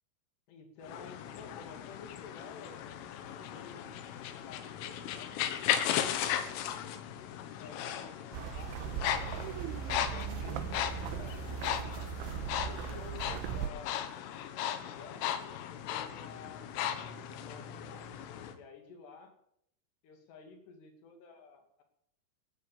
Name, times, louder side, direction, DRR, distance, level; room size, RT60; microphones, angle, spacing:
voice 1, 0.5-4.1 4.4-5.9 6.2-6.6 7.6-9.6 10.1-12.1 12.4-14.2 14.8-16.7 17.4-18.1 18.5-19.3 20.0-21.8, left 5 dB, 65° left, 6 dB, 4.3 m, -52 dB
sound 1, 0.8-18.5, left 10 dB, 85° left, 3.9 m, -37 dB
sound 2, 8.3-13.7, right 9 dB, 80° right, 3.3 m, -38 dB
15.5 x 11.5 x 7.3 m, 0.72 s
omnidirectional pair, 5.6 m